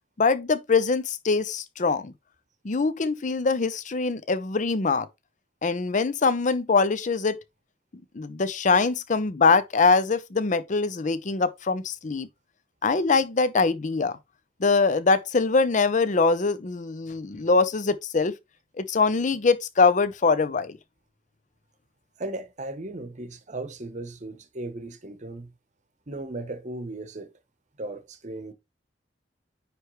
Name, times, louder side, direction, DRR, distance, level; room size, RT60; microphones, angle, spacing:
voice 1, 0.2-2.1 2.6-5.1 5.6-7.4 8.1-12.3 12.8-14.1 14.6-18.3 18.8-20.8, left 4 dB, 45° left, 0.6 m, -23 dB
voice 2, 22.2-25.5 26.1-27.3 27.8-28.5, right 2 dB, 40° right, 0.9 m, -36 dB
9.5 x 3.2 x 3.1 m
head